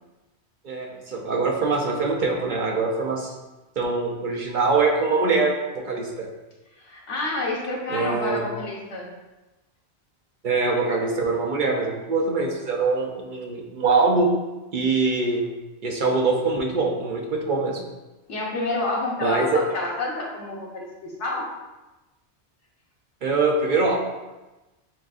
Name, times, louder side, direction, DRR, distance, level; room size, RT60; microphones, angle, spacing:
voice 1, 0.6-3.3 3.8-6.3 7.9-8.5 10.4-14.3 14.7-15.4 15.8-17.8 19.2-19.6 23.2-24.0, right 3 dB, 55° right, 0 dB, 0.6 m, -23 dB
voice 2, 6.8-9.1 18.3-21.5, left 2 dB, 85° left, -3 dB, 1.3 m, -29 dB
7.4 x 2.5 x 2.4 m, 1.1 s
omnidirectional pair, 1.2 m